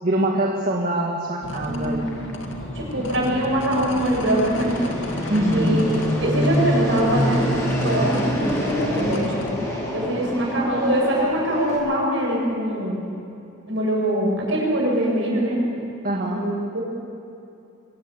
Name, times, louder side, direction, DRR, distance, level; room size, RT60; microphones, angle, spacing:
voice 1, 0.0-2.0 5.3-5.8 16.0-16.4, right 1 dB, 45° right, -1 dB, 1.8 m, -23 dB
sound 1, 1.4-9.7, left 1 dB, 65° left, 2.2 m, -33 dB
Fixed-wing aircraft airplane, 1.6-11.8, equal, 15° left, 5.2 m, -27 dB
voice 2, 1.6-2.1 2.7-4.8 5.5-8.4 8.7-9.4 9.9-13.0 13.7-15.6 16.3-16.8, right 1 dB, 65° right, -2 dB, 7.6 m, -23 dB
23.5 x 14.0 x 9.8 m, 2.7 s
head